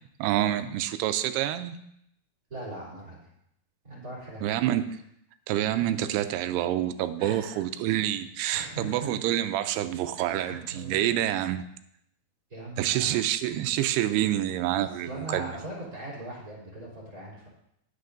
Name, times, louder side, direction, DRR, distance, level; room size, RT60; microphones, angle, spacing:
voice 1, 0.2-1.8 4.4-5.0 5.5-11.7 12.8-15.5, right 12 dB, 85° right, 10 dB, 2.6 m, -27 dB
voice 2, 2.5-3.3 3.8-4.4 7.2-7.6 8.5-9.1 10.2-11.1 12.5-13.2 15.0-17.5, right 1 dB, 25° right, -6 dB, 3.3 m, -40 dB
20.0 x 6.7 x 2.6 m, 0.76 s
omnidirectional pair, 4.6 m